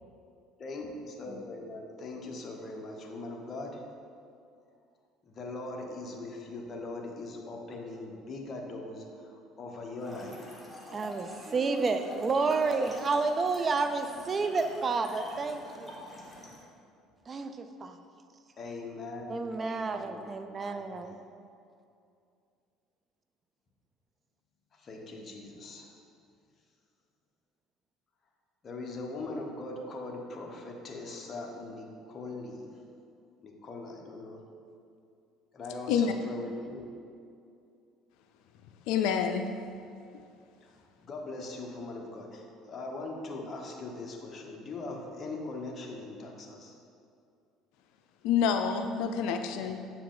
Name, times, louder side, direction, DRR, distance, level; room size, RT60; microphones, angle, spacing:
voice 1, 0.6-3.8 5.2-10.6 18.6-21.2 24.7-25.9 28.6-32.8 33.4-34.4 35.5-36.9 40.6-46.8, left 2 dB, 40° left, 1 dB, 1.1 m, -41 dB
Trickle dribble / Fill (with liquid), 10.0-16.6, left 1 dB, ahead, 1.5 m, -45 dB
voice 2, 10.9-15.9 17.3-18.0 19.3-21.2, right 4 dB, 30° right, 8 dB, 0.4 m, -30 dB
voice 3, 38.9-39.5 48.2-49.8, left 7 dB, 80° left, 6 dB, 0.4 m, -27 dB
8.1 x 4.7 x 3.8 m, 2.5 s
supercardioid pair, 105°, 0 cm